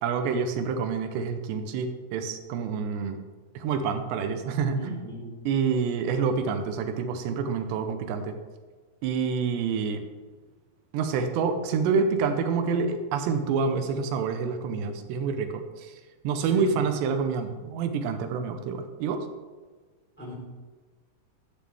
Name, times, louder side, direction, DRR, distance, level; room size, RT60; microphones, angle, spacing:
voice 1, 0.0-3.2 3.6-5.0 5.5-8.4 9.0-10.0 10.9-15.9 16.2-19.3, right 5 dB, 85° right, 6 dB, 3.0 m, -27 dB
voice 2, 4.7-5.3 16.5-16.8 20.2-20.3, equal, 5° left, -5 dB, 2.7 m, -36 dB
13.5 x 9.3 x 3.5 m, 1.4 s
omnidirectional pair, 4.8 m